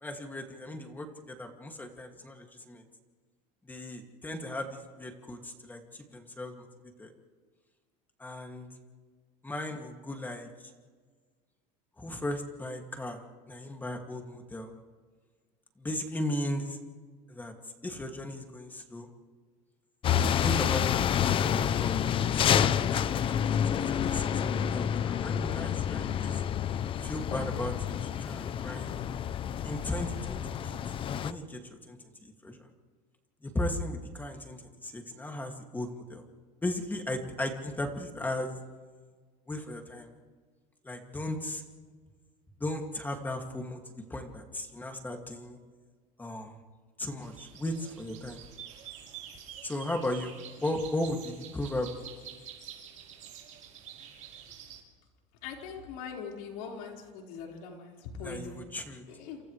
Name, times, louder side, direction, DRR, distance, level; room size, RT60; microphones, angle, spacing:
voice 1, 0.0-2.8 3.6-6.7 7.0-7.1 8.2-8.7 9.4-10.7 12.0-13.2 13.5-14.7 15.8-16.8 17.3-19.1 20.4-26.4 27.0-27.7 28.2-29.0 29.6-30.8 31.2-32.7 33.4-36.2 36.6-38.6 39.5-40.1 40.8-41.6 42.6-43.8 44.1-45.6 46.2-46.6 47.0-48.4 49.6-50.3 50.6-51.9 58.2-59.1, left 1 dB, 10° left, 3 dB, 2.3 m, -36 dB
sound 1, 20.0-31.3, left 9 dB, 30° left, 0.6 m, -28 dB
sound 2, 47.2-54.8, right 9 dB, 45° right, 6.0 m, -47 dB
voice 2, 55.4-58.6 59.1-59.4, left 5 dB, 80° left, 0 dB, 4.9 m, -41 dB
29.0 x 28.0 x 3.3 m, 1.5 s
cardioid pair, 145°, 17 cm